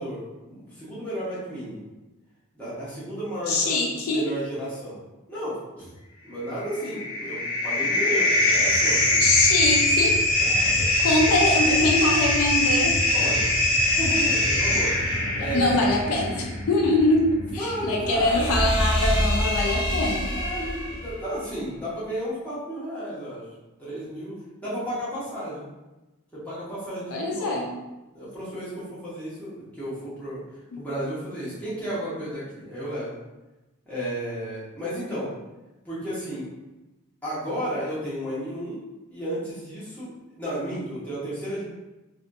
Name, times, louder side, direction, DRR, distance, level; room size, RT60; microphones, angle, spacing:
voice 1, 0.0-1.8 2.5-5.0 5.3-5.9 6.2-9.3 10.4-10.9 13.1-15.1 15.4-15.9 17.4-18.5 20.3-23.5 23.8-25.7 26.3-27.6 28.1-30.4 30.8-33.1 33.9-35.3 35.8-36.5 37.2-38.8 39.1-41.6, equal, 5° left, -11 dB, 1.0 m, -33 dB
voice 2, 3.5-4.2 9.2-10.2 11.0-12.9 15.4-17.3 17.5-20.3 27.1-27.7, left 2 dB, 80° left, 0 dB, 0.4 m, -23 dB
sound 1, 6.5-21.1, left 1 dB, 25° left, 0.5 m, -23 dB
2.6 x 2.6 x 2.3 m, 1.1 s
head